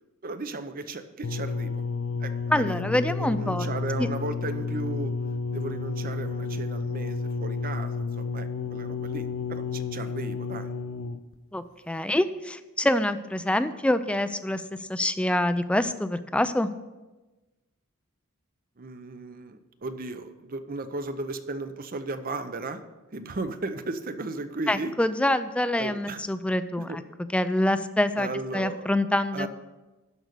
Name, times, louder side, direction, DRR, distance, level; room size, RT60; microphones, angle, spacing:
voice 1, 0.2-1.8 2.2-5.1 5.5-10.7 18.8-22.8 23.1-24.9 25.8-26.2 26.9-27.0 28.2-28.9 29.3-29.5, right 3 dB, 40° right, 10 dB, 0.7 m, -35 dB
sound 1, 1.2-11.4 12.2-12.3, left 4 dB, 60° left, 0.5 m, -31 dB
voice 2, 2.5-3.7 4.0-4.1 11.5-14.6 14.9-16.7 24.7-27.0 27.3-29.5, left 1 dB, 5° left, 12 dB, 0.4 m, -26 dB
12.0 x 5.3 x 6.6 m, 1.1 s
head